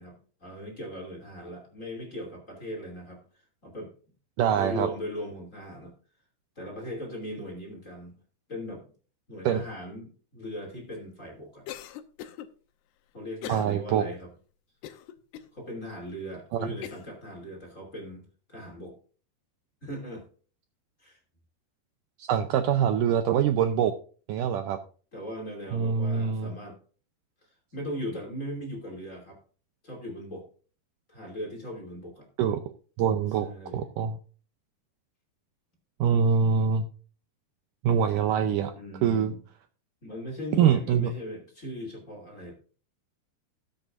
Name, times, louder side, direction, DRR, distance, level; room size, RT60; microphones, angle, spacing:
voice 1, 0.0-3.2 3.6-3.9 4.5-5.9 6.6-8.2 8.5-8.9 9.3-11.7 13.1-14.3 15.5-18.2 18.5-19.0 19.8-20.2 21.0-21.2 25.1-26.8 27.4-29.4 29.8-30.5 31.1-32.3 33.4-33.9 38.7-39.4 40.0-42.5, equal, 20° left, 0 dB, 2.6 m, -39 dB
voice 2, 4.4-4.9 9.5-9.6 13.5-14.1 16.5-16.6 22.2-23.9 24.3-24.8 25.7-26.5 32.4-32.6 33.0-33.5 33.7-34.2 36.0-36.9 37.8-38.7 39.0-39.3 40.6-41.1, right 8 dB, 90° right, 7 dB, 1.8 m, -24 dB
Cough, 11.7-12.5 13.4-13.8 14.2-14.3 14.8-15.5 16.1-16.2 16.8-17.1, left 11 dB, 85° left, 2.8 m, -41 dB
18.0 x 7.9 x 2.6 m, 0.39 s
omnidirectional pair, 4.7 m